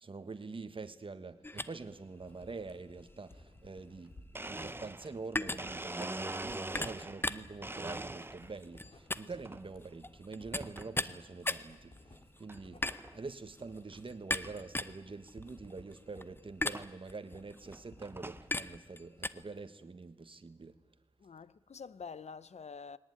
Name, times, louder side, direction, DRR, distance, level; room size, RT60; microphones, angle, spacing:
voice 1, 0.0-11.9 12.4-12.8 13.1-20.7, right 4 dB, 50° right, 1.4 m, -45 dB
sound 1, 1.4-19.3, left 2 dB, 20° left, 0.7 m, -40 dB
Writing, 2.2-18.7 19.0-19.8, left 2 dB, 55° left, 3.7 m, -59 dB
Domestic sounds home sounds, 4.0-4.1 4.3-7.3 7.6-8.6 9.1-9.6 10.6-10.9 11.5-11.6 12.5-12.6 12.8-13.2 13.6-13.7 13.9-14.0 14.4-14.5 15.9-16.0 16.7-16.9 17.5-18.5, right 2 dB, 20° right, 0.7 m, -42 dB
voice 2, 21.2-23.0, left 5 dB, 75° left, 0.7 m, -47 dB
21.0 x 18.5 x 9.8 m
wide cardioid pair, 90°, 11 cm